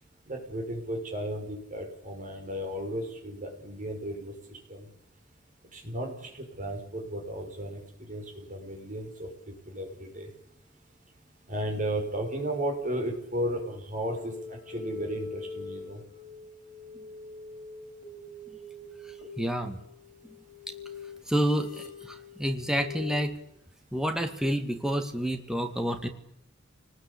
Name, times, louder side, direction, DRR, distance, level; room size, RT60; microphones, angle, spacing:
voice 1, 0.3-4.9 5.7-7.8 8.1-10.3 11.5-16.0, right 1 dB, 40° right, 3 dB, 5.9 m, -34 dB
sound 1, 14.0-23.2, left 4 dB, 35° left, 5.6 m, -44 dB
voice 2, 19.4-19.8 21.3-23.3 23.9-26.1, equal, 5° right, 5 dB, 2.0 m, -29 dB
28.0 x 20.0 x 8.5 m, 0.78 s
head